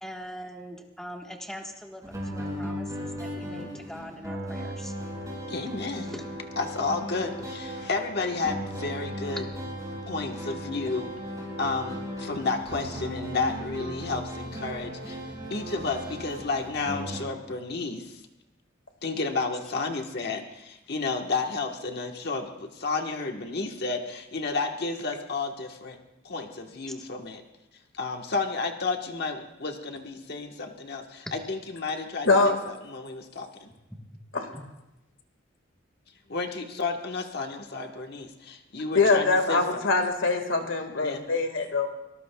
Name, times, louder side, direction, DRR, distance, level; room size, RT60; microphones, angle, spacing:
voice 1, 0.0-4.9 6.1-6.2 7.3-7.4 8.4-8.6 26.9-27.0 34.5-34.6, equal, 5° left, 1 dB, 1.3 m, -42 dB
sound 1, 2.0-17.2, equal, 20° right, 5.6 m, -36 dB
voice 2, 5.5-6.1 6.6-9.4 10.1-11.1 11.6-15.2 15.5-18.2 19.0-26.0 26.2-27.4 27.9-33.7 36.3-39.6 41.0-41.2, left 3 dB, 55° left, 4 dB, 1.3 m, -31 dB
voice 3, 32.3-32.6 34.3-34.5 38.9-41.9, left 3 dB, 80° left, 5 dB, 1.8 m, -23 dB
24.0 x 19.0 x 2.3 m, 0.94 s
head